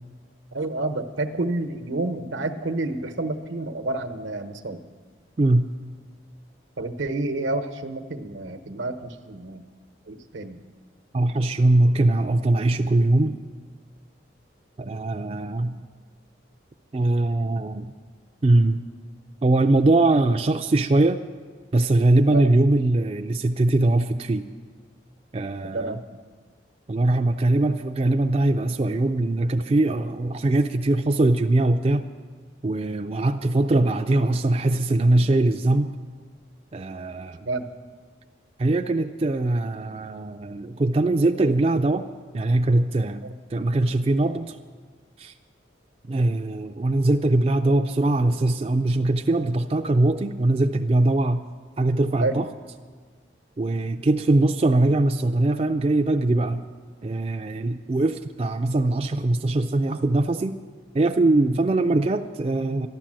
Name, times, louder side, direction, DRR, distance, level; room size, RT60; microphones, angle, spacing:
voice 1, 0.5-4.8 6.8-9.6 10.0-10.6 22.3-22.5 25.6-26.0 37.5-37.6 43.2-43.3 52.2-52.4, right 2 dB, 85° right, 8 dB, 1.0 m, -29 dB
voice 2, 5.4-5.7 11.1-13.4 14.8-15.8 16.9-17.9 18.4-18.8 19.4-21.2 21.7-24.4 25.3-26.0 26.9-32.1 32.6-35.9 36.7-37.5 38.6-42.1 42.3-43.3 43.5-44.6 45.2-45.3 46.1-51.4 51.8-52.5 53.6-56.6 57.0-60.6 60.9-62.9, right 2 dB, 30° right, 6 dB, 0.4 m, -21 dB
12.5 x 11.5 x 7.5 m, 1.5 s
head